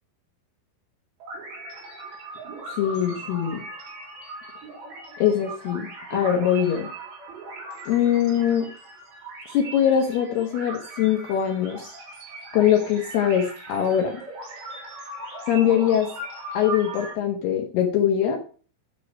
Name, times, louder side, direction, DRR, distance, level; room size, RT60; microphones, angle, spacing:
sound 1, 1.2-17.1, right 2 dB, 85° right, 7.0 m, -39 dB
voice 1, 2.8-3.6 5.2-6.9 7.9-8.7 9.5-11.9 12.5-14.2 15.5-16.1 16.5-18.4, left 9 dB, 70° left, 2 dB, 2.5 m, -22 dB
12.0 x 6.5 x 5.3 m, 0.40 s
omnidirectional pair, 6.0 m